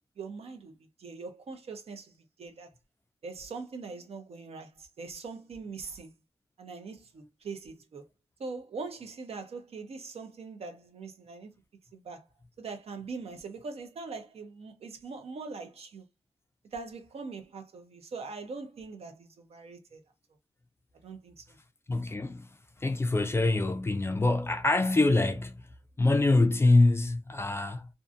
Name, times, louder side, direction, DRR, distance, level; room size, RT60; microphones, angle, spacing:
voice 1, 0.2-2.1 2.4-2.7 3.2-6.1 6.6-8.1 8.4-11.5 11.9-12.3 12.6-16.0 16.7-20.0 21.0-21.6, right 4 dB, 75° right, 0.6 m, -42 dB
voice 2, 21.9-22.5 22.8-25.6 26.0-27.9, left 2 dB, 25° left, 0.3 m, -25 dB
2.6 x 2.5 x 2.4 m
wide cardioid pair, 125°, 10 cm